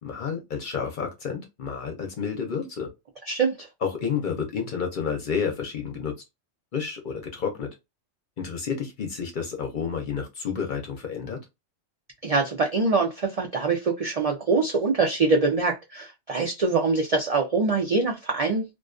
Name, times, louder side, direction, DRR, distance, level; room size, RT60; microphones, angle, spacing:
voice 1, 0.0-2.9 3.8-6.1 6.7-7.7 8.4-11.4, left 6 dB, 55° left, 0.6 m, -30 dB
voice 2, 3.3-3.7 12.2-18.6, right 4 dB, 65° right, 0.3 m, -24 dB
2.4 x 2.2 x 2.4 m
omnidirectional pair, 1.3 m